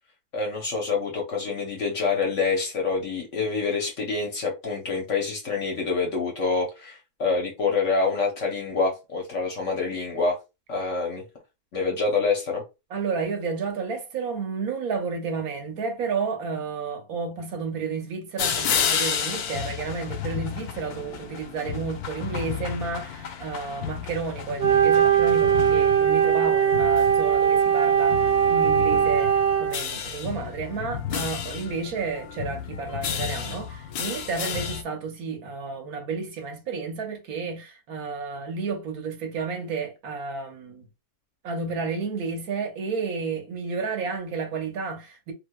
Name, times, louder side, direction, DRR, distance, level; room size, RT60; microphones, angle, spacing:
voice 1, 0.3-10.4 10.7-11.3 11.7-12.6, left 4 dB, 55° left, 1.0 m, -26 dB
voice 2, 12.9-40.8 41.4-45.3, right 5 dB, 70° right, 1.3 m, -31 dB
sound 1, 18.4-34.8, left 8 dB, 75° left, 1.1 m, -32 dB
Wind instrument woodwind instrument, 24.6-29.8, right 8 dB, 50° right, 0.7 m, -20 dB
3.2 x 2.8 x 2.2 m
omnidirectional pair, 1.7 m